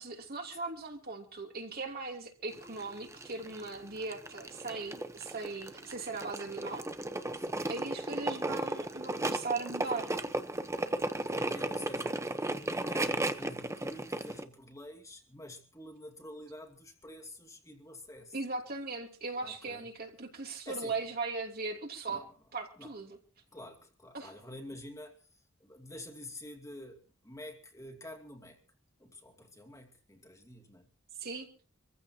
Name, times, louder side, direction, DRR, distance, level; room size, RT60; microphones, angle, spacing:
voice 1, 0.0-6.8 7.7-10.1 18.3-22.2 22.5-23.2 24.1-24.3 31.2-31.5, right 3 dB, 50° right, 3.1 m, -38 dB
sound 1, 2.5-14.4, right 1 dB, 15° right, 0.9 m, -35 dB
voice 2, 7.4-7.7 9.9-10.2 11.1-18.4 19.4-19.9 20.7-21.0 22.1-22.3 22.8-23.0 23.5-25.1 25.6-28.6 29.0-30.9, left 1 dB, 15° left, 2.6 m, -48 dB
26.0 x 15.0 x 2.9 m
head